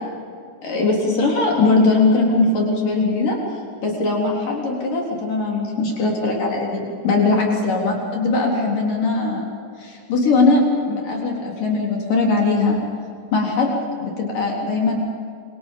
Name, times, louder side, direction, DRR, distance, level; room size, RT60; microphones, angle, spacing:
voice 1, 0.6-3.4 3.8-9.4 9.8-12.8 13.3-13.7 14.0-15.0, left 3 dB, 65° left, -2 dB, 5.3 m, -20 dB
29.0 x 25.5 x 5.5 m, 2.4 s
omnidirectional pair, 4.1 m